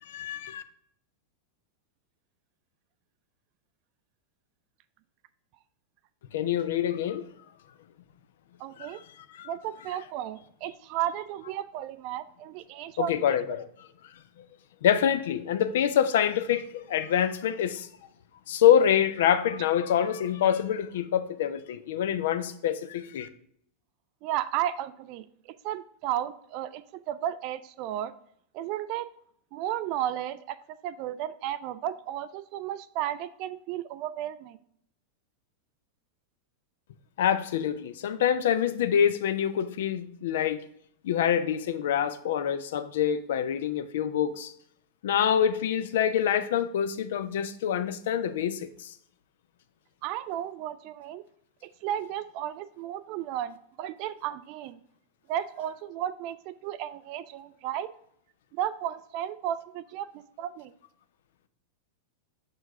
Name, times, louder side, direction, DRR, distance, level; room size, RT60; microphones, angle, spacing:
voice 1, 0.1-0.6 6.3-7.2 8.8-8.9 9.3-9.5 13.0-13.6 14.8-17.9 18.5-23.3 37.2-40.6 41.0-44.5 45.0-48.9, left 9 dB, 55° left, 0.4 m, -26 dB
voice 2, 8.6-9.0 9.4-13.3 24.2-28.1 28.5-29.1 29.5-34.6 50.0-51.2 51.6-54.8 55.3-57.9 58.5-60.7, right 11 dB, 45° right, 0.3 m, -34 dB
6.5 x 4.5 x 3.5 m
figure-of-eight pair, 90°, 0 cm